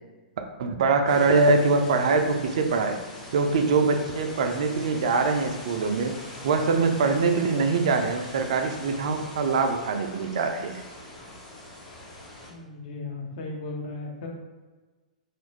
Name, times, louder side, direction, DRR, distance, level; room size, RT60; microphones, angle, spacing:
voice 1, 0.6-3.0 3.3-6.1 6.4-10.8, right 4 dB, 55° right, 5 dB, 0.4 m, -23 dB
sound 1, 1.1-12.5, left 1 dB, 30° left, 1.2 m, -42 dB
voice 2, 12.5-14.3, left 3 dB, 55° left, 0 dB, 0.7 m, -36 dB
3.1 x 2.4 x 3.1 m, 1.3 s
figure-of-eight pair, 105°, 4 cm